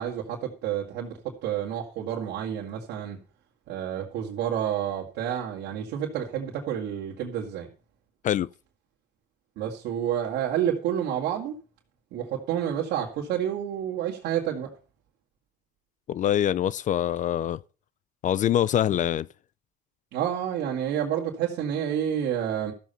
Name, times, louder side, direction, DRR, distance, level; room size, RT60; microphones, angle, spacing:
voice 1, 0.0-3.2 3.7-7.7 9.6-11.5 12.1-14.7 20.1-22.7, right 9 dB, 85° right, 2.2 m, -29 dB
voice 2, 16.1-17.6 18.2-19.3, left 11 dB, 50° left, 0.4 m, -24 dB
13.5 x 7.4 x 5.6 m
cardioid pair, 110°, 17 cm